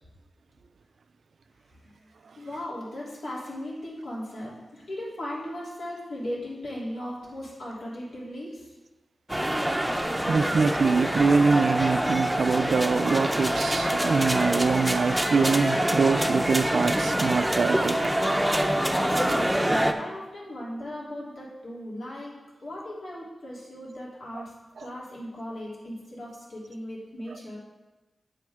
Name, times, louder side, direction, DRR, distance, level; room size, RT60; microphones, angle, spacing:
voice 1, 2.4-8.7 18.9-22.3 22.6-24.5 24.8-27.6, left 1 dB, 85° left, 3.2 m, -37 dB
sound 1, 9.3-19.9, right 1 dB, 5° right, 0.6 m, -25 dB
voice 2, 10.3-18.1 24.3-24.4 24.8-24.9, right 4 dB, 70° right, 0.4 m, -24 dB
8.5 x 7.6 x 3.7 m
wide cardioid pair, 105°, 0 cm